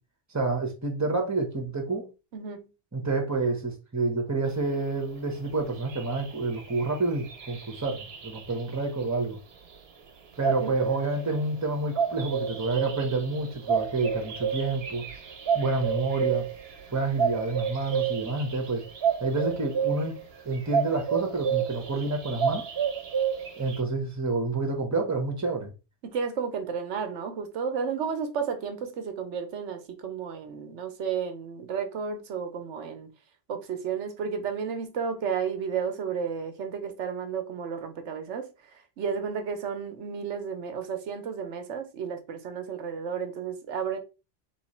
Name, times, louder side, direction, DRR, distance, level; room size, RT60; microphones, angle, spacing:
voice 1, 0.3-2.1 2.9-9.4 10.4-15.0 15.5-16.5 16.9-18.8 19.2-20.2 20.4-22.7 23.6-25.7, right 3 dB, 15° right, 1.0 m, -28 dB
voice 2, 2.3-2.7 10.6-10.7 26.0-33.1 33.5-44.0, right 6 dB, 85° right, 1.1 m, -32 dB
sound 1, 5.5-5.6 5.8-8.9 10.3-23.8, right 7 dB, 65° right, 1.0 m, -30 dB
3.2 x 3.2 x 4.2 m
omnidirectional pair, 1.2 m